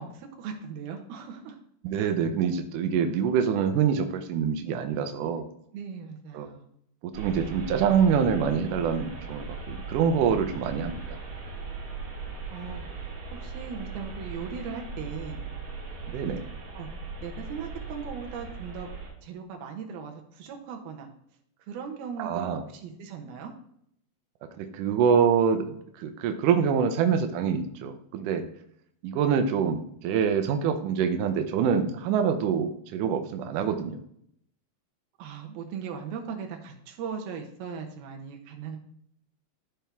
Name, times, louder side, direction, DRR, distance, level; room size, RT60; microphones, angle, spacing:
voice 1, 0.0-1.6 5.7-6.7 12.5-12.8 13.3-15.4 16.7-16.9 17.2-18.9 19.2-21.1 21.7-23.5 35.2-38.8, right 6 dB, 70° right, 2 dB, 2.9 m, -38 dB
voice 2, 1.8-5.5 6.3-6.5 7.0-11.2 16.1-16.4 22.2-22.6 24.6-28.4 29.0-34.0, right 7 dB, 85° right, 6 dB, 1.8 m, -25 dB
sound 1, 7.1-19.1, right 4 dB, 55° right, 3.2 m, -39 dB
13.0 x 4.4 x 3.5 m, 0.68 s
omnidirectional pair, 4.8 m